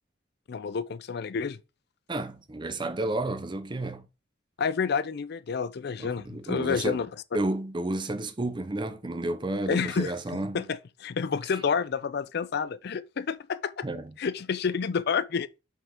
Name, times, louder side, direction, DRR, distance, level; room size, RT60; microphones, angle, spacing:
voice 1, 0.5-1.6 4.6-7.1 9.7-10.1 10.5-13.9 14.2-15.5, left 6 dB, 55° left, 0.4 m, -29 dB
voice 2, 2.1-4.1 6.0-7.0 7.3-10.6 13.8-14.1, right 2 dB, 25° right, 0.6 m, -31 dB
5.7 x 5.5 x 3.6 m
head